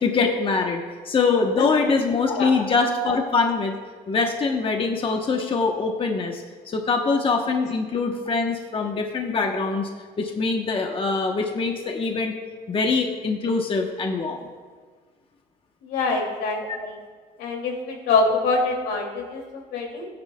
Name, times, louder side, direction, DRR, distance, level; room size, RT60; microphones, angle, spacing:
voice 1, 0.0-3.7 4.1-9.9 10.2-12.3 12.7-14.5 16.7-16.8, left 4 dB, 30° left, 3 dB, 1.0 m, -23 dB
voice 2, 1.6-2.0 2.3-2.5 15.8-17.0 17.4-20.1, left 3 dB, 80° left, 1 dB, 2.6 m, -25 dB
18.5 x 9.8 x 2.3 m, 1.5 s
cardioid pair, 110°, 17 cm